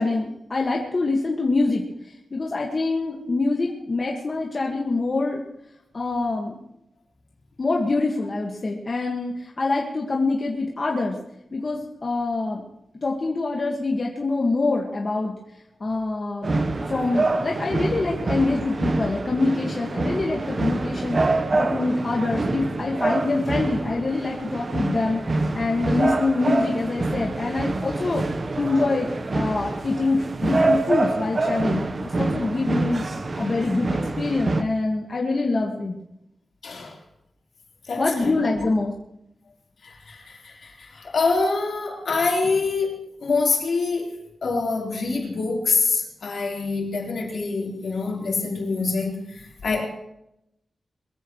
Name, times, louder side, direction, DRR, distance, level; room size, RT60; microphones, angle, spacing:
voice 1, 0.0-1.8 2.3-5.4 5.9-6.6 7.6-11.1 11.5-12.6 13.0-15.3 15.8-16.5 16.9-25.2 25.5-28.2 28.6-33.0 33.4-36.0 38.0-38.9, left 3 dB, 35° left, -1 dB, 1.7 m, -25 dB
sound 1, 16.4-34.6, right 2 dB, 35° right, 1.0 m, -26 dB
voice 2, 36.6-37.0 37.9-38.3 39.8-49.8, left 4 dB, 65° left, -2 dB, 4.1 m, -25 dB
22.5 x 15.5 x 3.2 m, 0.81 s
wide cardioid pair, 165°, 0 cm